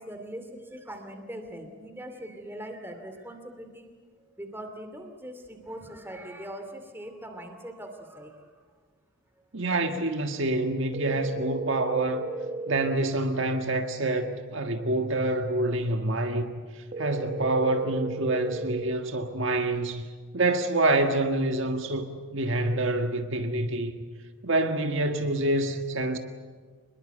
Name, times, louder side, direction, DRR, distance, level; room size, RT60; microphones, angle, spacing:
voice 1, 0.0-3.9 4.4-8.5, right 1 dB, 10° right, 2.5 m, -41 dB
voice 2, 9.5-12.3 12.7-20.1 20.3-24.0 24.4-26.2, right 2 dB, 60° right, 1.7 m, -27 dB
sound 1, 10.9-12.9 16.9-18.9, right 3 dB, 35° right, 0.9 m, -35 dB
25.5 x 21.5 x 7.9 m
head